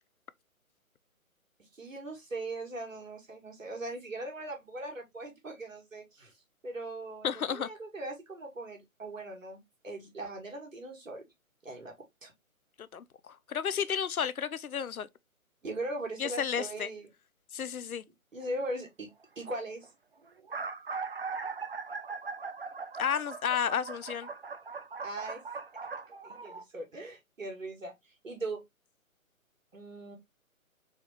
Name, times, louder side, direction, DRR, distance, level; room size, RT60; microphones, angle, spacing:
voice 1, 1.7-6.3 6.6-11.2 11.6-11.9 12.2-12.3 15.6-17.1 18.3-19.1 19.4-19.9 25.0-25.4 26.2-27.9 28.2-28.6 29.7-30.2, right 2 dB, 65° right, 1.9 m, -39 dB
voice 2, 7.2-7.7 12.8-15.1 16.2-16.9 17.5-18.0 23.0-24.3, left 8 dB, 75° left, 0.5 m, -32 dB
sound 1, 18.4-18.7 19.5-19.6 19.8-19.9 20.3-26.6, right 4 dB, 45° right, 0.5 m, -40 dB
4.1 x 3.0 x 2.9 m
figure-of-eight pair, 140°, 43 cm